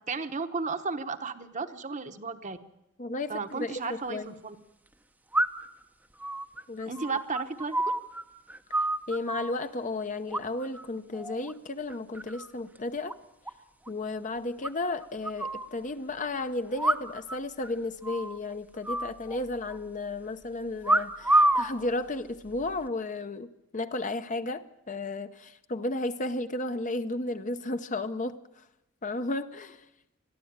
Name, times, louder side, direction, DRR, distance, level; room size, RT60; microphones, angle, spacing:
voice 1, 0.1-2.6 3.3-4.6 6.9-7.8, right 4 dB, 35° right, 8 dB, 1.0 m, -34 dB
voice 2, 3.0-4.3 6.7-6.9 9.1-13.2 13.9-28.6 29.0-29.8, left 2 dB, 35° left, 9 dB, 0.8 m, -33 dB
sound 1, 3.5-3.6 5.3-5.8 6.2-8.2 8.5-9.5 10.3-10.8 11.1-11.5 11.9-12.5 12.7-12.8 13.1-13.2 13.5-13.6 13.9-14.0 14.6-15.7 16.7-17.4 17.6-17.7 18.0-18.4 18.8-19.8 20.8-21.7 22.5-22.8, right 1 dB, 5° right, 0.7 m, -28 dB
21.5 x 14.0 x 8.8 m, 0.92 s
head